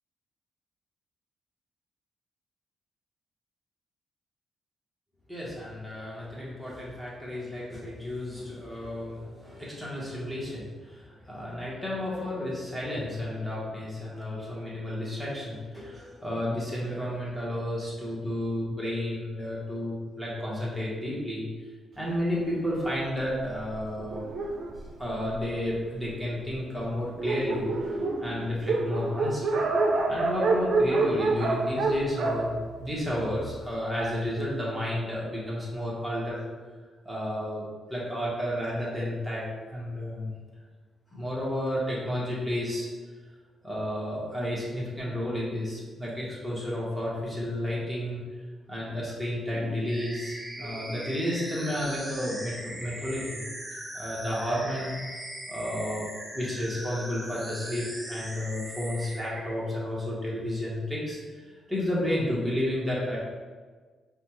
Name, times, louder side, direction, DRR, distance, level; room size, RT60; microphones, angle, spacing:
voice 1, 5.3-21.4 22.0-24.3 25.0-27.7 28.2-29.5 30.1-36.4 37.0-40.3 41.1-42.9 43.6-48.2 48.7-53.4 53.9-54.9 55.5-56.1 56.3-63.2, left 1 dB, ahead, -6 dB, 1.4 m, -32 dB
Dog, 22.8-25.7 26.4-26.5 26.8-26.9 27.1-33.5, right 3 dB, 70° right, 0.5 m, -28 dB
sound 1, 49.9-59.5, right 1 dB, 20° right, 0.8 m, -40 dB
4.9 x 2.4 x 3.0 m, 1.4 s
cardioid pair, 80°, 0 cm